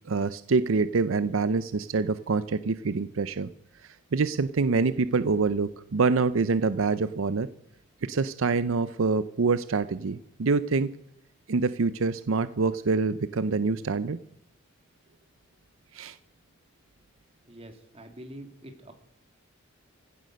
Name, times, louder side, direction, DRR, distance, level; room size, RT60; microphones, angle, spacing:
voice 1, 0.1-3.5 4.1-7.5 8.0-10.9 11.5-14.2 15.9-16.2, right 4 dB, 70° right, 14 dB, 0.6 m, -26 dB
voice 2, 17.5-18.9, right 1 dB, 30° right, 5 dB, 2.2 m, -45 dB
16.0 x 10.5 x 6.3 m, 0.78 s
head